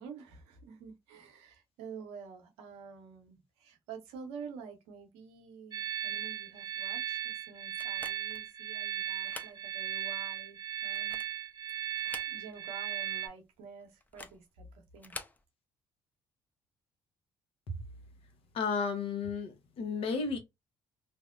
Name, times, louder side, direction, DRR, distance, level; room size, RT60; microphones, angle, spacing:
voice 1, 0.0-11.2 11.8-15.3, right 5 dB, 80° right, 0.8 m, -49 dB
sound 1, 5.7-13.3, right 10 dB, 40° right, 0.4 m, -37 dB
sound 2, 7.8-8.5 9.1-9.6 10.0-10.1 10.8-11.4 11.9-12.7 13.0-13.1 14.0-14.4 15.0-15.4, left 2 dB, 15° left, 0.5 m, -47 dB
voice 2, 18.5-20.4, left 5 dB, 60° left, 0.8 m, -33 dB
2.5 x 2.0 x 2.4 m
hypercardioid pair, 60°, 11 cm